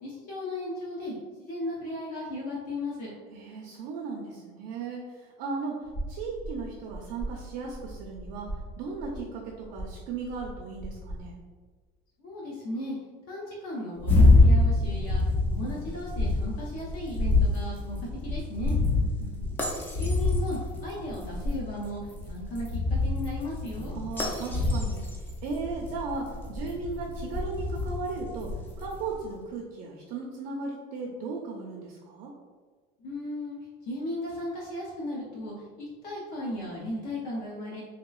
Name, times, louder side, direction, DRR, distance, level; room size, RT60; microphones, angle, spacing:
voice 1, 0.0-3.1 12.2-13.0 13.3-18.8 20.0-23.9 33.0-33.6 33.8-37.8, left 1 dB, 55° left, -5 dB, 0.6 m, -36 dB
voice 2, 3.3-11.4 18.7-19.4 23.9-32.3, right 4 dB, 60° right, -1 dB, 0.5 m, -36 dB
sound 1, 5.8-11.2, right 1 dB, 35° left, 1.0 m, -40 dB
sound 2, 14.0-29.1, left 2 dB, 10° left, 0.3 m, -26 dB
3.1 x 2.8 x 2.3 m, 1.5 s
cardioid pair, 170°, 18 cm